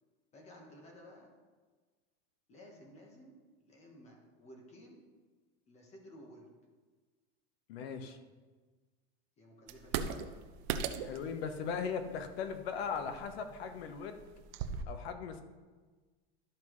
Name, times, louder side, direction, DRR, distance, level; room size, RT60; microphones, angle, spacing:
voice 1, 0.3-1.4 2.5-5.0 5.7-6.5 9.4-10.4, equal, 20° left, 0 dB, 1.2 m, -55 dB
voice 2, 7.7-8.2 11.0-14.2 14.9-15.4, left 6 dB, 75° left, 8 dB, 1.0 m, -38 dB
sound 1, 9.7-14.8, right 7 dB, 50° right, 0.5 m, -40 dB
12.0 x 5.6 x 3.1 m, 1.4 s
supercardioid pair, 165°, 31 cm